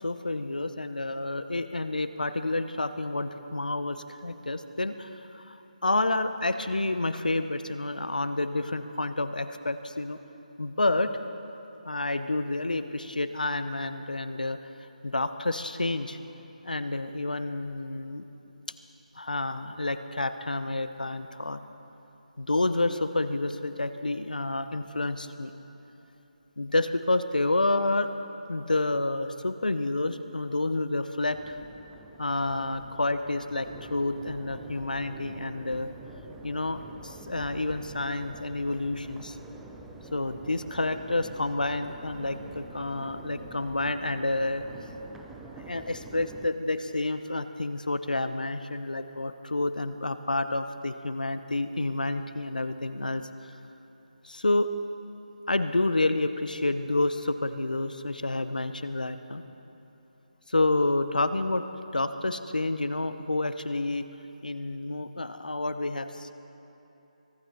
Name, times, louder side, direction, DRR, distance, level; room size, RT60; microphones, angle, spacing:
voice 1, 0.0-10.2 10.6-11.1 11.8-14.6 15.0-16.2 16.6-18.2 19.2-21.6 22.4-25.5 26.6-28.1 28.5-31.6 32.2-35.9 36.4-39.4 40.1-44.7 45.6-53.2 54.2-54.7 55.5-59.4 60.5-61.6 61.9-64.1 64.4-66.3, left 2 dB, 85° left, 11 dB, 0.8 m, -29 dB
Crowd, 31.3-46.5, right 2 dB, 5° right, 0.7 m, -46 dB
23.5 x 12.5 x 4.1 m, 3.0 s
figure-of-eight pair, 155°, 4 cm